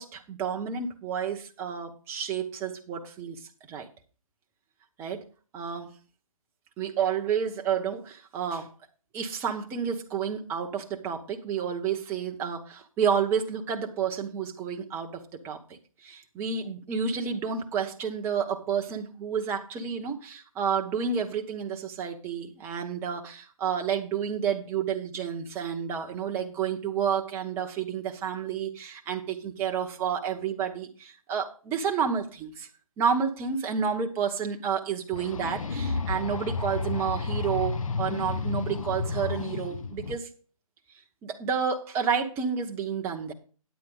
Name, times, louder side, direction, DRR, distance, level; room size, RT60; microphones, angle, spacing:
voice 1, 0.0-3.4 3.7-3.9 5.0-5.3 5.5-5.9 6.8-8.7 9.1-32.7 33.0-40.3 41.2-43.3, right 7 dB, 10° right, 3 dB, 0.8 m, -30 dB
sound 1, 35.1-40.1, left 4 dB, 65° left, 0.9 m, -31 dB
9.5 x 9.2 x 3.7 m, 0.38 s
figure-of-eight pair, 150°, 18 cm